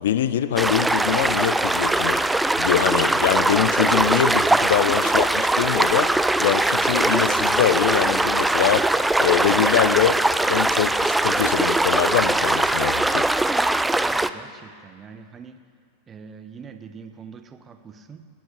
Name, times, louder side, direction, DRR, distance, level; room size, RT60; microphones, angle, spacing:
voice 1, 0.0-2.3 2.6-6.1 6.4-10.2 10.5-13.3, left 10 dB, 60° left, 14 dB, 0.5 m, -23 dB
sound 1, 0.6-14.3, right 2 dB, 5° right, 0.3 m, -21 dB
voice 2, 14.0-15.6 16.1-18.3, right 6 dB, 20° right, 9 dB, 0.8 m, -43 dB
19.5 x 14.0 x 3.1 m, 2.1 s
figure-of-eight pair, 90°, 0 cm